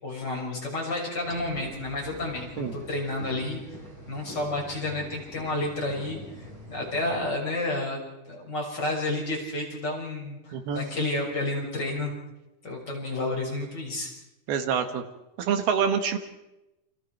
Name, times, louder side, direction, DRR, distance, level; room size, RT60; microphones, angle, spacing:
voice 1, 0.0-3.6 4.1-8.0 8.3-12.1 12.6-14.1, left 2 dB, 25° left, -1 dB, 6.7 m, -31 dB
sound 1, 1.2-7.2, right 1 dB, 50° right, 7.1 m, -44 dB
voice 2, 10.5-10.9 14.5-15.0 15.4-16.2, right 7 dB, 85° right, 7 dB, 3.6 m, -26 dB
29.0 x 25.5 x 4.6 m, 0.94 s
omnidirectional pair, 4.3 m